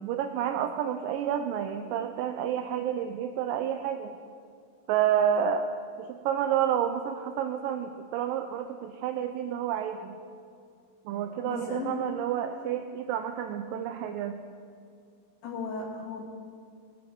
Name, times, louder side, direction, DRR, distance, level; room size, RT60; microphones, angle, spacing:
voice 1, 0.0-4.1 4.9-5.7 6.0-10.2 11.1-14.4, right 9 dB, 80° right, 7 dB, 2.2 m, -29 dB
voice 2, 11.4-12.0 15.4-16.2, left 4 dB, 85° left, -4 dB, 4.4 m, -36 dB
22.0 x 9.3 x 4.6 m, 2.4 s
omnidirectional pair, 4.1 m